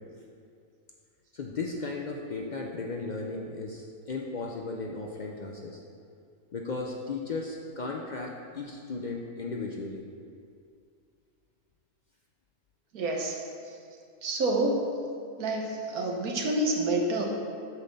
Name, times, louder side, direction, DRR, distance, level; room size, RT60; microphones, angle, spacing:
voice 1, 1.3-5.8 6.5-10.0, left 3 dB, 70° left, 0 dB, 0.4 m, -35 dB
voice 2, 12.9-13.4 14.2-14.8 15.4-17.3, right 2 dB, 80° right, 1 dB, 1.5 m, -28 dB
8.3 x 4.2 x 6.6 m, 2.4 s
omnidirectional pair, 1.6 m